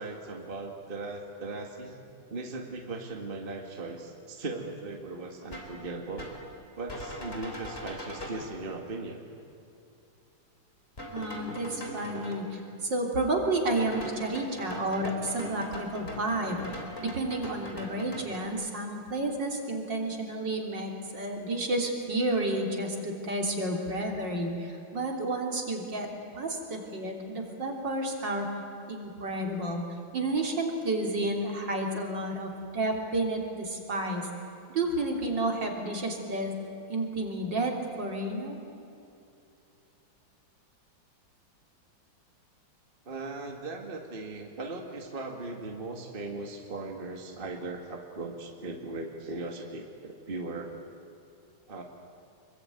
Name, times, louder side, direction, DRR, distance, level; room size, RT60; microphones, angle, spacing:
voice 1, 0.0-2.0 2.3-6.3 6.8-9.2 43.1-50.7 51.7-51.8, right 2 dB, 25° right, 2 dB, 2.1 m, -38 dB
sound 1, 5.5-5.8 6.2-6.4 6.9-8.5 11.0-12.3 13.7-18.5, left 1 dB, 30° left, 4.0 m, -41 dB
voice 2, 11.1-28.5 28.9-29.8 30.1-34.3 34.7-36.5 36.9-38.6, right 2 dB, 60° right, 1 dB, 4.0 m, -31 dB
25.5 x 23.0 x 9.4 m, 2.6 s
omnidirectional pair, 2.2 m